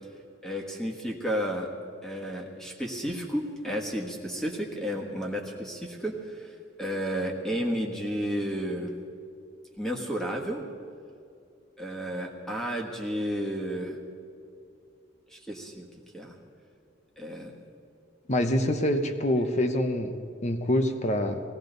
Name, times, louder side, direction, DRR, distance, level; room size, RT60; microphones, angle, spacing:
voice 1, 0.4-1.7 2.0-8.9 9.8-10.6 11.8-14.0 15.3-15.9 16.1-16.3 17.2-17.6, equal, 5° left, 0 dB, 1.5 m, -32 dB
voice 2, 18.3-20.2 20.4-21.4, left 1 dB, 40° left, 7 dB, 0.9 m, -25 dB
18.5 x 16.5 x 4.0 m, 2.4 s
head